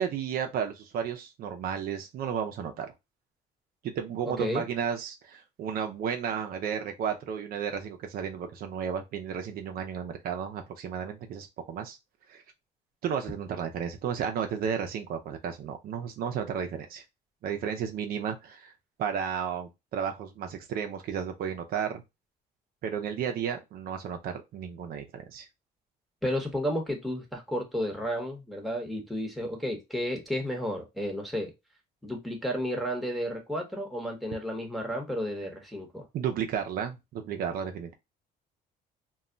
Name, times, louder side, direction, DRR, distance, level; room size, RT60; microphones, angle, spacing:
voice 1, 0.0-2.9 3.8-12.0 12.3-12.4 13.0-17.0 17.4-18.7 19.0-22.0 22.8-25.5 36.1-37.9, right 7 dB, 60° right, 0.5 m, -33 dB
voice 2, 26.2-31.5 32.0-36.1, equal, ahead, 0.9 m, -32 dB
2.3 x 2.1 x 3.6 m
cardioid pair, 110°, 17 cm